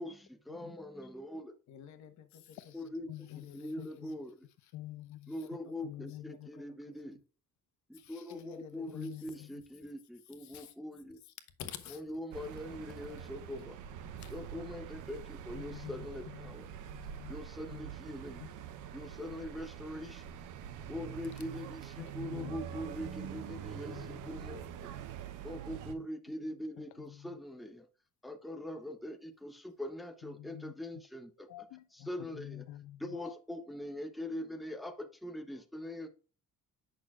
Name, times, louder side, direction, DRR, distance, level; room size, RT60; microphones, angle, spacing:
voice 1, 0.0-1.5 2.7-3.1 3.4-4.3 5.3-7.2 7.9-11.2 11.9-13.8 14.3-16.7 17.3-18.4 18.9-20.2 20.9-24.7 25.4-27.9 28.2-31.5 32.1-32.6 33.0-36.1, left 1 dB, ahead, 0.7 m, -42 dB
voice 2, 1.7-4.2 4.6-4.7 5.3-6.8 7.1-7.2 7.9-9.5 10.2-10.8 11.2-11.3 11.6-12.0 13.0-13.4 14.2-14.4, left 9 dB, 70° left, 1.2 m, -52 dB
voice 3, 3.1-4.2 4.7-6.5 8.9-9.6 15.5-16.6 16.9-17.3 17.7-17.9 18.4-18.5 22.0-24.5 25.9-26.1 26.5-27.4 30.2-30.7 31.5-33.4, left 14 dB, 85° left, 0.6 m, -48 dB
sound 1, 12.3-25.9, right 9 dB, 85° right, 0.9 m, -45 dB
8.2 x 6.2 x 2.4 m
cardioid pair, 135°, 30 cm